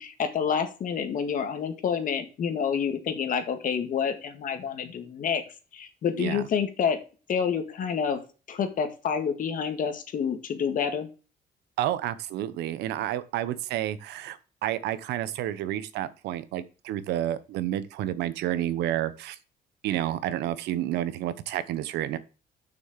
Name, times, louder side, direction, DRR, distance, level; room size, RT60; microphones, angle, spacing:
voice 1, 0.0-5.4 5.7-7.0 7.3-8.2 8.5-11.1, left 7 dB, 55° left, 8 dB, 1.9 m, -28 dB
voice 2, 11.8-19.4 19.8-22.2, right 12 dB, 80° right, 14 dB, 0.9 m, -30 dB
6.4 x 6.3 x 7.3 m, 0.34 s
cardioid pair, 110°, 17 cm